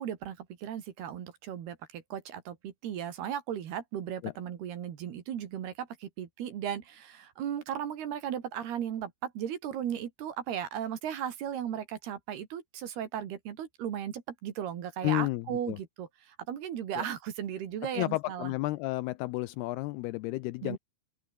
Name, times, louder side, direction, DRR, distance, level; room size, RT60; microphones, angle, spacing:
voice 1, 0.0-18.5 20.6-20.8, right 9 dB, 60° right, 4.0 m, -36 dB
voice 2, 15.0-15.8 17.0-17.1 17.9-20.8, left 19 dB, 85° left, 2.3 m, -32 dB
open air
omnidirectional pair, 5.4 m